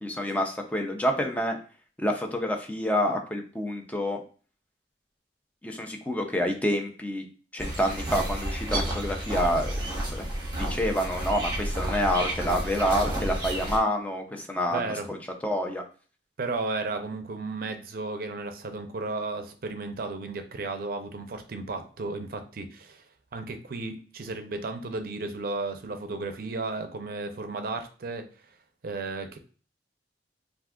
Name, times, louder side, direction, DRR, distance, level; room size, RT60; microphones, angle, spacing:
voice 1, 0.0-1.6 2.0-4.2 5.6-7.2 7.5-9.7 10.1-10.2 10.5-15.2 15.4-15.8, equal, 10° left, 3 dB, 0.4 m, -28 dB
sound 1, 7.6-13.8, right 1 dB, 25° right, 0.9 m, -31 dB
voice 2, 14.7-15.1 16.4-23.0 23.3-28.3 28.8-29.4, right 3 dB, 55° right, 7 dB, 0.5 m, -34 dB
2.5 x 2.3 x 3.5 m, 0.39 s
head